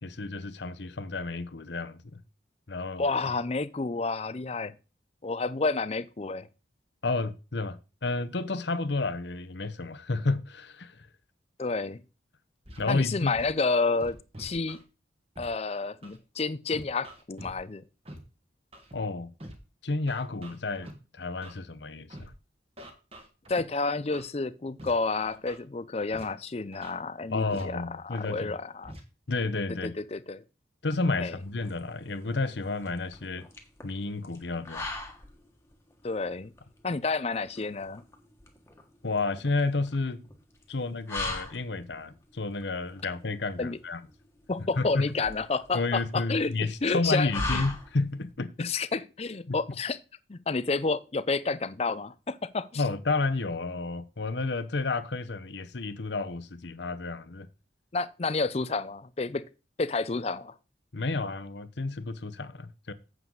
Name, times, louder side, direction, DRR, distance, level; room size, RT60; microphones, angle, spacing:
voice 1, 0.0-2.2 2.7-3.0 7.0-11.1 12.8-13.3 18.9-19.3 19.8-22.3 27.3-28.5 29.3-29.9 30.8-33.5 33.8-34.9 39.0-40.2 40.7-44.0 44.8-45.1 45.7-48.7 49.5-49.8 52.8-57.5 60.9-62.9, left 3 dB, 70° left, 0.9 m, -31 dB
voice 2, 3.0-4.7 5.2-6.5 11.6-12.0 12.9-14.8 15.4-17.8 23.5-28.9 29.8-30.4 31.2-31.3 36.0-36.5 36.8-38.0 43.6-43.8 44.5-46.5 46.8-47.6 48.6-50.0 50.3-52.8 57.9-59.4 59.8-60.5, left 3 dB, 35° left, 0.5 m, -30 dB
Scratching (performance technique), 12.6-12.8 13.3-13.5 14.0-14.8 15.3-15.4 16.0-16.2 16.7-17.5 18.0-18.2 18.7-18.9 19.4-19.5 20.1-20.9 21.4-21.6 22.1-22.3 22.8-23.6 24.1-24.3 24.8-24.9 25.2-25.6 26.1-26.2 26.7-26.9 27.5-27.6 28.1-28.3 28.8-29.0, right 1 dB, 30° right, 1.7 m, -45 dB
sound 1, 31.4-48.3, left 2 dB, 15° left, 1.5 m, -40 dB
9.5 x 7.8 x 4.0 m
head